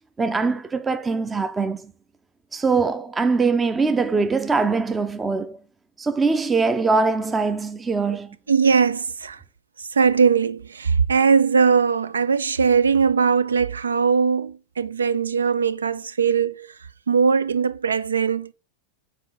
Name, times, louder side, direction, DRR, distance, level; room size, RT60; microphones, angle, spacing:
voice 1, 0.2-1.9 2.5-5.6 6.0-8.4, right 4 dB, 15° right, 0.5 m, -22 dB
voice 2, 8.5-9.4 10.0-16.7 17.1-18.5, right 6 dB, 70° right, 0.4 m, -20 dB
7.3 x 4.8 x 3.8 m
figure-of-eight pair, 90°, 0 cm